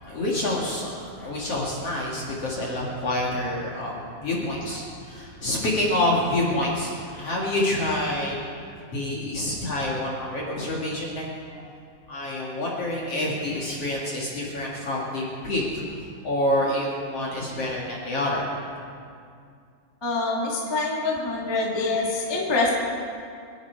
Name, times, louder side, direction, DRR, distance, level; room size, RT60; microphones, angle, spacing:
voice 1, 0.0-8.5 8.9-11.6 12.1-15.8 16.2-18.5, left 1 dB, 45° left, -4 dB, 2.1 m, -27 dB
voice 2, 20.0-22.7, left 3 dB, 20° left, -5 dB, 0.7 m, -25 dB
26.0 x 11.0 x 4.7 m, 2.3 s
omnidirectional pair, 5.7 m